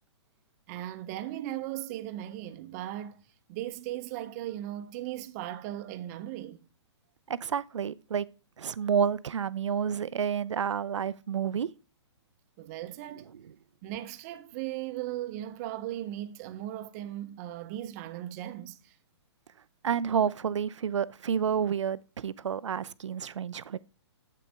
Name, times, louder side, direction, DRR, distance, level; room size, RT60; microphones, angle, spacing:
voice 1, 0.7-3.2 3.5-6.7 12.6-13.3 13.8-19.0, right 13 dB, 35° right, 0.6 m, -37 dB
voice 2, 7.3-8.3 8.6-11.7 19.8-23.8, right 7 dB, 90° right, 0.4 m, -29 dB
7.8 x 6.0 x 3.4 m
hypercardioid pair, 135°, 15 cm